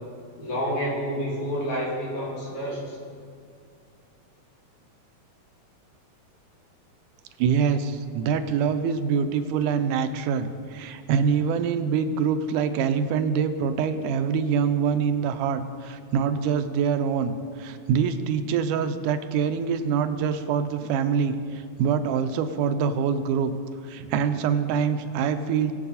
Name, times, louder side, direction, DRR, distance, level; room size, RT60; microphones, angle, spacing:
voice 1, 0.4-3.0, equal, 65° left, -6 dB, 3.9 m, -29 dB
voice 2, 7.4-23.5 23.8-25.7, right 6 dB, 85° right, 9 dB, 2.2 m, -25 dB
20.5 x 6.9 x 4.1 m, 2.3 s
omnidirectional pair, 3.6 m